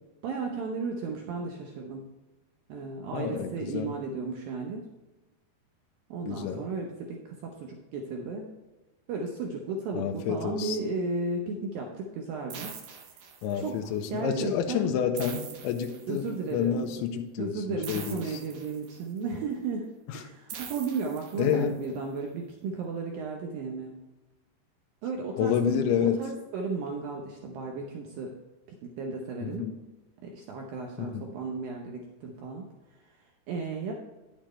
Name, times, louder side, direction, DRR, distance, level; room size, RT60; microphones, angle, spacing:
voice 1, 0.2-2.1 2.7-4.9 6.1-8.5 9.1-12.7 13.6-14.9 16.1-16.9 17.4-23.9 25.0-25.5 26.0-28.3 28.8-29.7 30.2-32.6 33.5-33.9, right 4 dB, 90° right, 1 dB, 2.0 m, -34 dB
voice 2, 3.1-3.9 6.3-6.6 9.9-10.8 13.4-18.4 20.1-20.2 21.4-21.7 25.4-26.2 29.4-29.8 31.0-31.3, left 8 dB, 85° left, 4 dB, 3.0 m, -29 dB
sound 1, 12.5-13.8 15.2-16.5 17.8-19.2 20.5-21.8, right 7 dB, 70° right, 2.9 m, -44 dB
10.0 x 8.9 x 3.2 m, 1.1 s
omnidirectional pair, 5.4 m